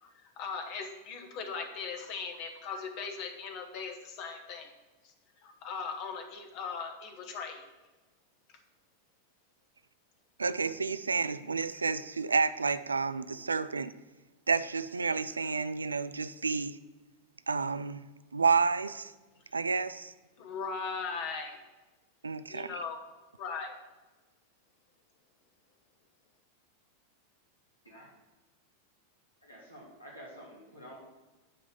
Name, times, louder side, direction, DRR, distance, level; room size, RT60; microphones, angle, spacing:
voice 1, 0.0-4.7 5.4-7.6 20.4-21.6 22.5-23.0 23.4-23.7, left 5 dB, 40° left, 1.2 m, -39 dB
voice 2, 10.4-13.9 14.5-16.8 17.5-18.1 18.3-19.1 19.5-20.1 22.2-22.7, right 4 dB, 75° right, 0.3 m, -30 dB
voice 3, 29.4-31.0, equal, 85° left, 2.1 m, -49 dB
8.9 x 3.7 x 6.8 m
figure-of-eight pair, 90°, 0 cm